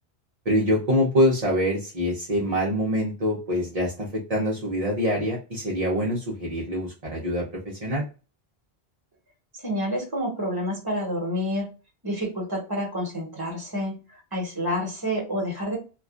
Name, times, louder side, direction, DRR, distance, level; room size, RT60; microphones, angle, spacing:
voice 1, 0.5-8.0, equal, 40° right, -3 dB, 0.7 m, -25 dB
voice 2, 9.6-11.7 12.0-15.8, equal, 25° right, -2 dB, 1.1 m, -29 dB
3.0 x 2.3 x 2.4 m, 0.33 s
omnidirectional pair, 1.0 m